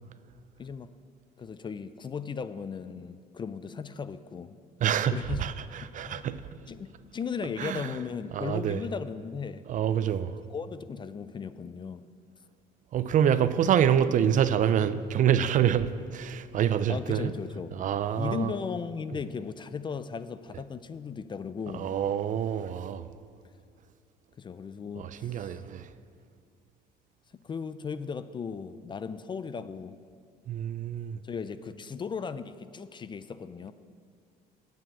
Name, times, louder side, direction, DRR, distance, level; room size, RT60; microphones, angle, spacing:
voice 1, 0.6-0.9 1.4-4.6 5.1-5.5 5.8-6.3 6.7-9.6 10.5-12.0 16.9-17.8 18.2-21.9 24.4-25.6 27.3-30.0 31.2-33.7, left 6 dB, 30° left, 0.4 m, -37 dB
voice 2, 4.8-6.4 7.6-7.9 8.3-8.8 9.7-10.3 12.9-17.3 17.7-18.5 21.7-23.1 25.0-25.9 30.5-31.2, right 9 dB, 50° right, 0.4 m, -26 dB
7.8 x 7.4 x 8.5 m
cardioid pair, 110°, 17 cm